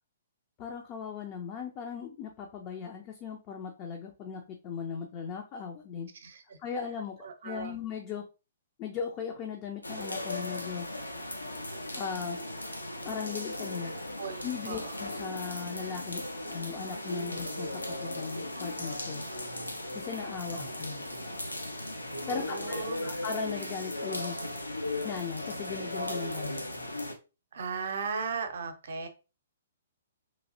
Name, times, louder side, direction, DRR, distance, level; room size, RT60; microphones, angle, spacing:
voice 1, 0.6-6.1 6.6-7.2 7.4-8.2 8.8-10.9 12.0-12.4 13.0-13.9 14.4-19.2 19.9-21.0 22.3-24.4 25.0-26.6, left 6 dB, 30° left, 3 dB, 0.5 m, -38 dB
voice 2, 6.2-6.6 7.2-7.8 14.2-15.0 20.6-20.8 22.2-23.1 27.5-29.1, right 5 dB, 55° right, 8 dB, 0.6 m, -37 dB
sound 1, 9.8-27.1, left 1 dB, 85° left, 0.6 m, -37 dB
3.1 x 2.6 x 2.6 m, 0.31 s
figure-of-eight pair, 120°, 0 cm